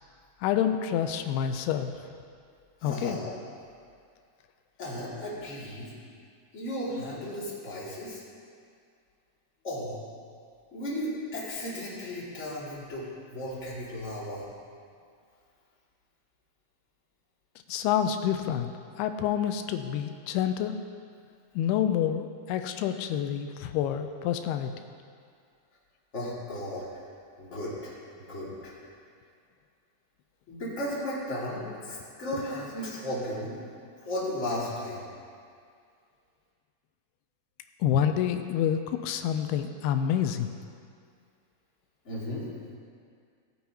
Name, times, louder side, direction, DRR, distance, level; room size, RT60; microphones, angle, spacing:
voice 1, 0.4-1.9 2.8-3.2 17.7-18.7 19.0-20.8 21.6-24.7 37.8-40.5, left 9 dB, 90° left, 7 dB, 2.6 m, -28 dB
voice 2, 2.8-3.3 4.8-5.9 6.5-8.2 9.6-10.0 10.7-14.5 26.1-26.9 27.4-27.9 28.3-28.7 30.5-33.6 34.0-35.1 42.0-42.5, left 1 dB, 20° left, -8 dB, 2.3 m, -35 dB
18.0 x 9.4 x 2.9 m, 2.2 s
omnidirectional pair, 4.5 m